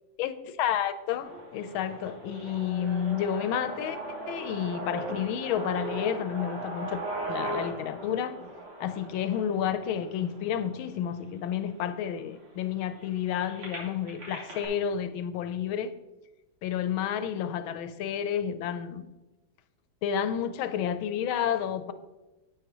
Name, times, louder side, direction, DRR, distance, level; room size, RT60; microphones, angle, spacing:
voice 1, 0.2-4.0 4.3-7.0 7.3-8.4 8.8-16.0 16.6-19.1 20.0-21.9, left 9 dB, 80° left, 1.4 m, -30 dB
sound 1, 1.2-11.2 11.8-11.9 12.2-14.7, right 2 dB, 85° right, 3.6 m, -39 dB
11.5 x 8.6 x 3.0 m
omnidirectional pair, 2.3 m